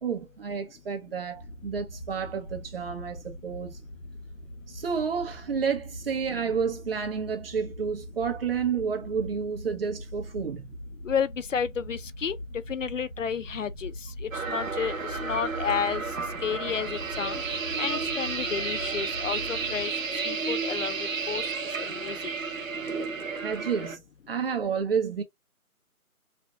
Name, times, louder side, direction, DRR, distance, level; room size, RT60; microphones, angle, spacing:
voice 1, 0.0-3.8 4.7-10.7 23.4-24.0 24.3-25.2, right 6 dB, 40° right, 1.2 m, -30 dB
sound 1, 1.3-19.9, equal, 20° left, 0.8 m, -42 dB
voice 2, 11.0-12.4 12.7-13.9 14.2-16.0 16.4-17.4 17.8-21.4 21.8-22.2, left 7 dB, 60° left, 0.5 m, -31 dB
sound 2, 14.3-24.0, right 4 dB, 60° right, 1.2 m, -32 dB
4.9 x 2.9 x 2.4 m
figure-of-eight pair, 155°, 44 cm